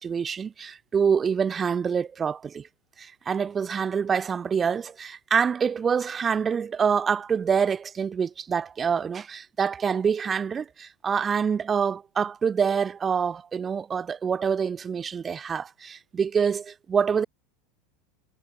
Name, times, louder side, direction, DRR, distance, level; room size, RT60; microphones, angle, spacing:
voice 1, 0.0-2.7 3.0-17.2, right 6 dB, 25° right, 5.0 m, -26 dB
hypercardioid pair, 90°, 0 cm